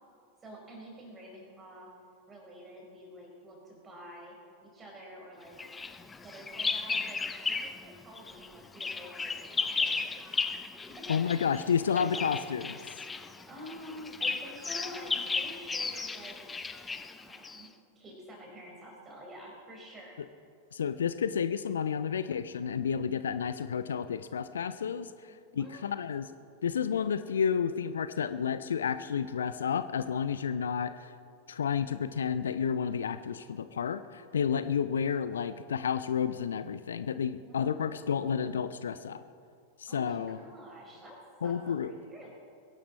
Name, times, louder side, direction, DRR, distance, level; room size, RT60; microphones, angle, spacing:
voice 1, 0.4-1.9 2.3-4.3 4.6-5.6 6.2-10.4 10.8-11.6 11.9-12.3 13.5-16.4 17.2-17.7 18.0-20.2 25.3-26.0 37.5-38.1 39.9-42.3, equal, 20° right, 0 dB, 4.1 m, -48 dB
Bird vocalization bird call bird song, 5.6-7.9 8.2-17.7, left 4 dB, 15° left, 0.6 m, -35 dB
voice 2, 11.1-12.7 20.7-26.3 26.6-31.1 31.5-39.2 39.8-40.4 41.4-41.9, left 7 dB, 65° left, 13 dB, 0.4 m, -31 dB
22.0 x 11.5 x 4.2 m, 2.4 s
figure-of-eight pair, 90°, 0 cm